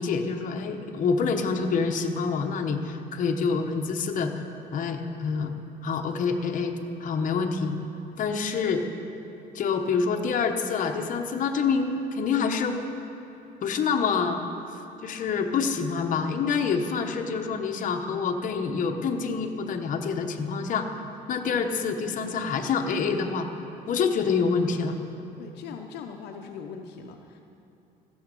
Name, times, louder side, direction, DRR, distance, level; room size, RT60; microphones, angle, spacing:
voice 1, 0.0-4.5 4.7-5.5 5.8-7.8 8.2-8.8 9.5-12.8 13.6-14.4 15.0-20.9 21.3-23.5 23.9-24.9, left 5 dB, 50° left, 4 dB, 1.0 m, -27 dB
voice 2, 25.4-27.4, left 6 dB, 80° left, 3 dB, 0.8 m, -40 dB
15.0 x 7.2 x 5.3 m, 3.0 s
cardioid pair, 110°, 17 cm